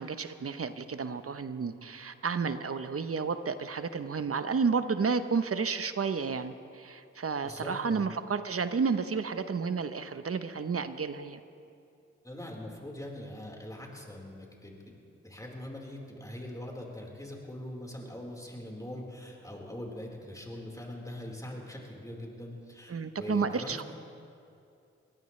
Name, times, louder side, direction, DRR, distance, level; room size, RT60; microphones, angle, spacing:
voice 1, 0.0-11.4 22.9-23.9, right 5 dB, 50° right, 10 dB, 0.9 m, -31 dB
voice 2, 7.4-8.1 12.2-14.9 15.2-23.8, left 1 dB, 10° left, -1 dB, 4.4 m, -42 dB
23.5 x 17.5 x 3.3 m, 2.6 s
cardioid pair, 45°, 29 cm